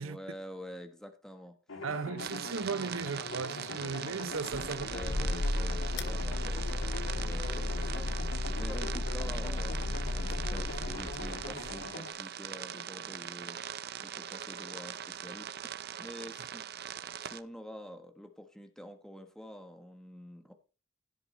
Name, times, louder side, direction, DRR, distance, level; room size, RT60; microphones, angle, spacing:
voice 1, 0.0-1.6 4.7-13.6 14.0-15.5 16.0-16.6 17.2-20.5, equal, 5° left, 1.2 m, -47 dB
sound 1, 1.7-12.1, left 2 dB, 80° left, 2.5 m, -43 dB
voice 2, 1.8-5.2 5.5-5.6, right 5 dB, 90° right, 0.7 m, -37 dB
sound 2, 2.2-17.4, right 9 dB, 50° right, 0.6 m, -42 dB
sound 3, 4.4-11.8, left 2 dB, 55° left, 1.1 m, -34 dB
16.0 x 6.0 x 4.3 m
head